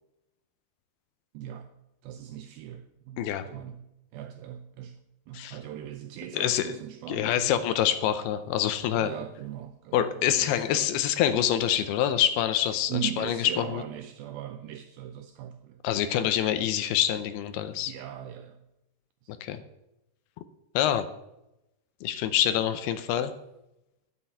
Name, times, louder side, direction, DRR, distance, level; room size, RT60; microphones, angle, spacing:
voice 1, 1.3-1.7 2.0-3.8 4.1-5.0 5.3-7.6 9.0-10.0 10.4-11.0 12.9-15.8 17.9-18.6 19.2-19.4, right 11 dB, 90° right, 2.1 m, -39 dB
voice 2, 6.3-6.8 7.1-9.1 9.9-13.8 15.8-17.9 19.4-19.6 20.8-21.1 22.0-23.3, left 10 dB, 80° left, 2.5 m, -26 dB
9.8 x 7.7 x 8.4 m
omnidirectional pair, 4.9 m